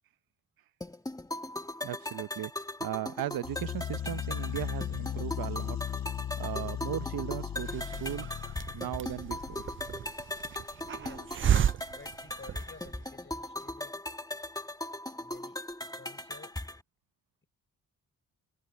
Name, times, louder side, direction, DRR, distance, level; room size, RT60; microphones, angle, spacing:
sound 1, 0.8-16.8, left 1 dB, 10° left, 1.8 m, -39 dB
voice 1, 1.8-2.5 2.8-5.8 6.4-8.3 8.7-9.6, right 12 dB, 80° right, 0.9 m, -37 dB
sound 2, 3.4-10.0, left 10 dB, 50° left, 0.7 m, -37 dB
Hiss, 7.5-13.0, right 9 dB, 35° right, 0.4 m, -33 dB
voice 2, 10.9-11.3 11.9-14.0 15.2-15.7 15.9-16.6, left 4 dB, 35° left, 6.8 m, -53 dB
cardioid pair, 75°, 35 cm